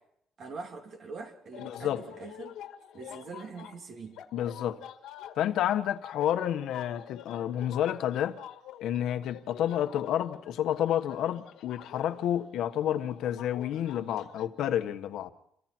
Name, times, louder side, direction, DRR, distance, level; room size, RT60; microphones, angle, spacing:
voice 1, 0.4-2.6 2.9-4.2, right 4 dB, 45° right, 3.1 m, -43 dB
sound 1, 1.5-14.5, left 11 dB, 90° left, 2.0 m, -46 dB
voice 2, 1.6-2.0 4.3-4.8 5.4-8.4 8.8-15.3, left 11 dB, 75° left, 1.4 m, -30 dB
29.5 x 23.5 x 4.6 m
cardioid pair, 145°, 0 cm